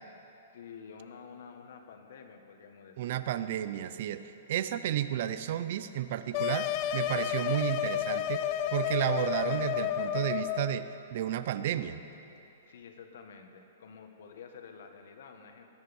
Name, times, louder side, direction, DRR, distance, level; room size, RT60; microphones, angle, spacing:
voice 1, 0.5-3.3 12.7-15.7, left 6 dB, 60° left, 5 dB, 1.6 m, -49 dB
voice 2, 3.0-8.4 8.7-12.0, right 11 dB, 45° right, 13 dB, 0.6 m, -32 dB
sound 1, 6.3-10.8, left 10 dB, 30° left, 0.5 m, -31 dB
20.0 x 10.5 x 5.5 m, 3.0 s
hypercardioid pair, 170°, 0 cm